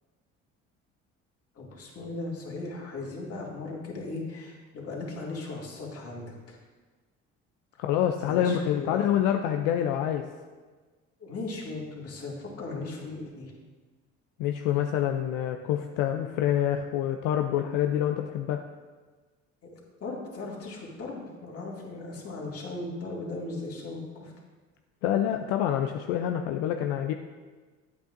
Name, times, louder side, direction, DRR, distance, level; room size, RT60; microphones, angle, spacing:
voice 1, 1.5-6.6 8.3-9.1 11.2-13.5 19.6-19.7 20.0-24.3, left 2 dB, 50° left, -3 dB, 2.3 m, -37 dB
voice 2, 7.8-10.2 14.4-18.6 25.0-27.1, left 10 dB, 80° left, 5 dB, 0.5 m, -26 dB
9.2 x 8.1 x 2.6 m, 1.4 s
supercardioid pair, 70°, 31 cm